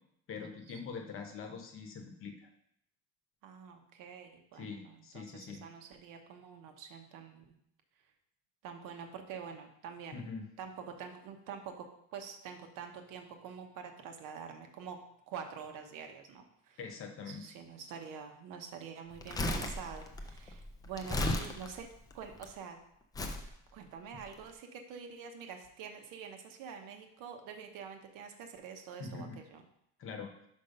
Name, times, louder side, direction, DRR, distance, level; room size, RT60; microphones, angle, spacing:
voice 1, 0.3-2.3 4.5-5.7 10.1-10.5 16.8-17.4 29.0-29.4 30.0-30.3, left 5 dB, 40° left, 4 dB, 0.9 m, -43 dB
voice 2, 3.4-7.4 8.6-10.3 10.6-11.9 12.1-15.0 15.3-16.8 17.2-21.9 22.1-22.8 23.7-29.6, right 7 dB, 75° right, 5 dB, 1.1 m, -46 dB
Crumpling crinkling, 19.1-22.5 23.1-23.5 24.2-24.3, left 1 dB, 10° left, 0.4 m, -35 dB
5.5 x 5.2 x 5.3 m, 0.75 s
cardioid pair, 175°, 33 cm